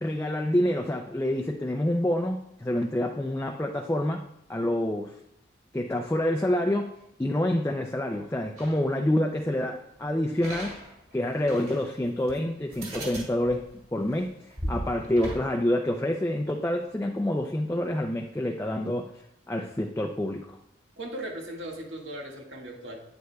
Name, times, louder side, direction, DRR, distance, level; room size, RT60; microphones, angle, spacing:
voice 1, 0.0-4.2 4.5-5.1 5.7-6.9 7.2-10.8 11.1-19.1 19.5-20.6, left 1 dB, 15° left, 2 dB, 0.4 m, -27 dB
sound 1, 8.6-8.8 10.4-11.9 12.3-12.4 12.7-15.4, right 1 dB, 35° right, 2.4 m, -37 dB
voice 2, 21.0-23.0, right 1 dB, 85° right, -1 dB, 1.9 m, -38 dB
9.4 x 9.0 x 2.3 m, 0.75 s
head